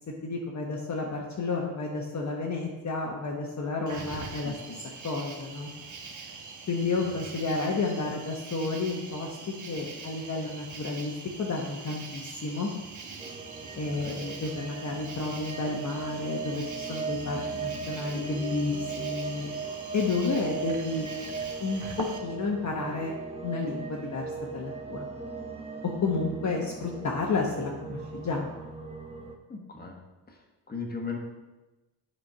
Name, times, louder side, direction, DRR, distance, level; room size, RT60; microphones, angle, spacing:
voice 1, 0.2-4.6 5.0-5.7 6.7-9.4 9.7-11.1 11.4-12.7 13.7-19.5 19.9-21.1 21.6-23.1 23.4-24.2 24.5-25.1 26.0-28.5, left 3 dB, 40° left, -1 dB, 1.0 m, -31 dB
Cricket, 3.9-22.2, right 4 dB, 45° right, 1.2 m, -43 dB
voice 2, 4.4-4.8 6.2-6.4 6.9-7.0 13.8-14.2 29.5-30.0 30.7-31.2, left 4 dB, 20° left, 1 dB, 1.3 m, -38 dB
sound 1, 13.2-29.3, right 5 dB, 15° right, 0.8 m, -38 dB
8.0 x 4.5 x 5.5 m, 1.1 s
cardioid pair, 115°, 42 cm